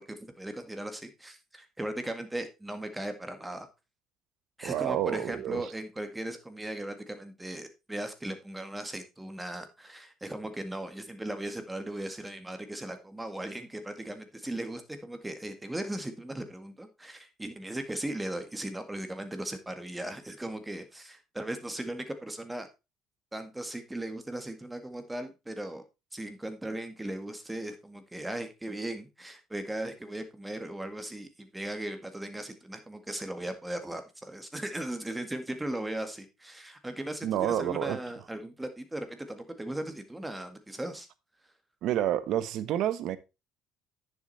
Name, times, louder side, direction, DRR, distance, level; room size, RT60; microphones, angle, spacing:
voice 1, 0.0-3.7 4.6-22.7 23.3-25.8 26.1-41.1, right 1 dB, 10° right, 1.9 m, -37 dB
voice 2, 4.6-5.6 37.2-38.0 41.8-43.2, right 11 dB, 65° right, 1.1 m, -29 dB
10.0 x 6.9 x 4.2 m
cardioid pair, 110°, 0 cm